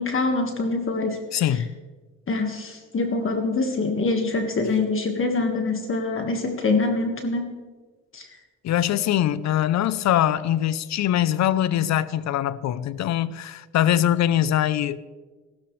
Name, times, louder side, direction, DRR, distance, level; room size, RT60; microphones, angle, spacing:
voice 1, 0.0-1.2 1.5-1.6 2.3-7.5 8.1-8.3, left 3 dB, 45° left, 4 dB, 1.7 m, -25 dB
voice 2, 1.3-1.7 8.6-15.0, left 11 dB, 65° left, 17 dB, 0.6 m, -22 dB
15.0 x 13.0 x 3.2 m, 1.3 s
cardioid pair, 90°, 30 cm